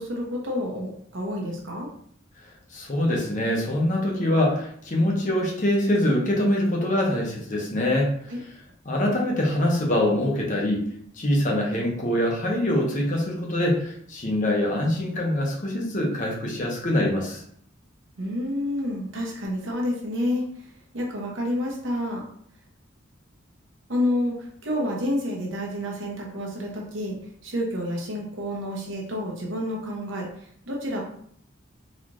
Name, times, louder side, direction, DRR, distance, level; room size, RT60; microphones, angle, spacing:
voice 1, 0.0-1.9 8.3-8.4 18.2-20.7 20.9-22.2 23.9-27.2 27.4-30.3 30.7-31.0, left 1 dB, 75° right, -2 dB, 1.0 m, -29 dB
voice 2, 2.7-8.3 8.8-10.8 11.1-17.4, left 1 dB, 40° left, -1 dB, 0.8 m, -24 dB
4.1 x 2.6 x 3.1 m, 0.64 s
head